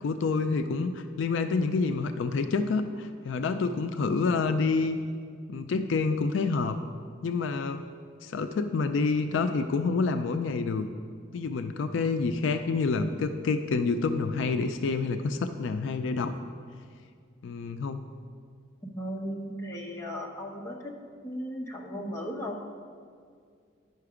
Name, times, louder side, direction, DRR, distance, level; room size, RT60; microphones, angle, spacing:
voice 1, 0.0-5.0 5.5-6.8 7.2-7.8 8.2-10.9 11.3-16.3 17.4-18.0, left 4 dB, 65° left, 9 dB, 0.3 m, -28 dB
voice 2, 18.9-21.0 21.2-22.6, equal, 15° left, -1 dB, 0.8 m, -36 dB
9.5 x 5.8 x 4.9 m, 2.2 s
head